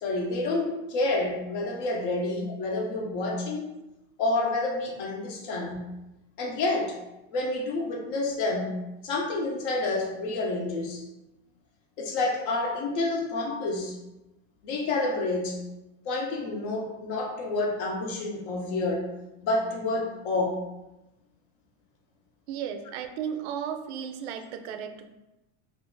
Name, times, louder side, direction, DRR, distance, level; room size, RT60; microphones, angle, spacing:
voice 1, 0.0-3.6 4.2-5.9 6.4-7.0 7.3-8.8 9.0-11.0 12.0-13.9 14.6-15.6 16.0-19.1 19.4-20.6, left 2 dB, 55° left, 1 dB, 0.7 m, -29 dB
voice 2, 22.5-25.1, right 8 dB, 85° right, 7 dB, 0.5 m, -34 dB
2.5 x 2.4 x 3.7 m, 0.96 s
supercardioid pair, 165°, 33 cm